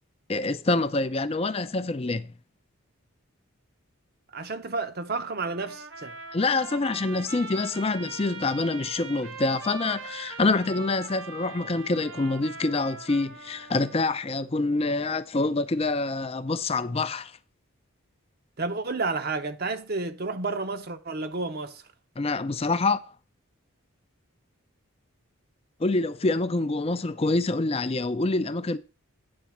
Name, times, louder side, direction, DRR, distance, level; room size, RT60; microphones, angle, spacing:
voice 1, 0.3-2.3 6.3-17.3 22.2-23.0 25.8-28.8, left 3 dB, 25° left, 0.5 m, -26 dB
voice 2, 4.3-6.2 18.6-21.8, right 3 dB, 45° right, 0.8 m, -31 dB
Trumpet, 5.4-14.2, right 4 dB, 60° right, 1.5 m, -41 dB
9.6 x 4.0 x 7.2 m
head